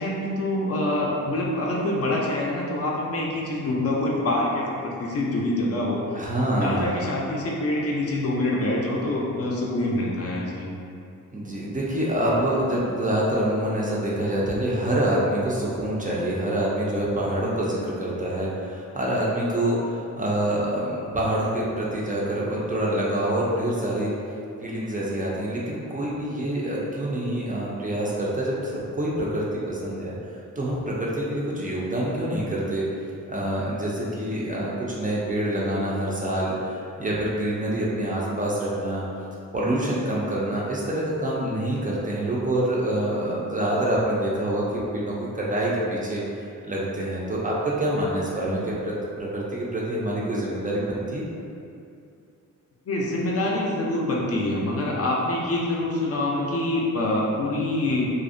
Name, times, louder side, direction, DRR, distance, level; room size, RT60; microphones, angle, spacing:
voice 1, 0.0-6.0 6.6-10.7 48.4-48.6 52.9-58.1, left 1 dB, 50° left, -3 dB, 0.4 m, -25 dB
voice 2, 6.1-6.9 11.3-24.1 24.6-30.1 30.6-32.8 33.3-39.0 39.5-46.2 46.6-51.3, right 1 dB, 25° right, -6 dB, 0.3 m, -26 dB
2.5 x 2.0 x 2.5 m, 2.5 s
wide cardioid pair, 115°, 32 cm